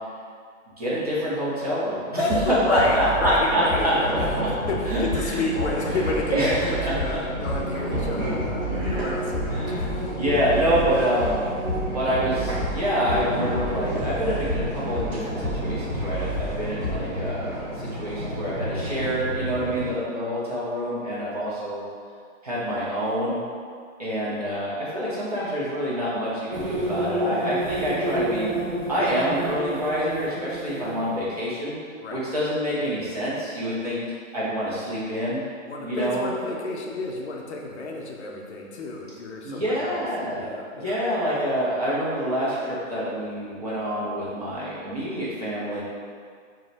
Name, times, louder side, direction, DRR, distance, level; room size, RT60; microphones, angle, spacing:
voice 1, 0.8-3.9 4.8-5.4 5.9-7.2 8.7-9.1 9.5-9.8 10.2-11.4 11.9-17.5 17.8-21.8 22.4-23.4 24.0-28.5 28.9-31.8 32.1-34.0 34.3-35.4 35.8-36.3 39.4-40.4 40.7-45.8, equal, 30° right, -8 dB, 0.4 m, -26 dB
voice 2, 2.2-10.2 32.0-32.2 35.6-40.0 40.3-41.0, left 2 dB, 55° left, -1 dB, 0.5 m, -31 dB
Bass drum, 2.3-17.3, equal, ahead, 0.8 m, -32 dB
sound 1, 3.4-19.9, right 1 dB, 90° right, 1.1 m, -30 dB
sound 2, 26.5-31.4, right 1 dB, 60° right, 0.8 m, -29 dB
2.5 x 2.1 x 3.9 m, 2.1 s
hypercardioid pair, 160°, 40 cm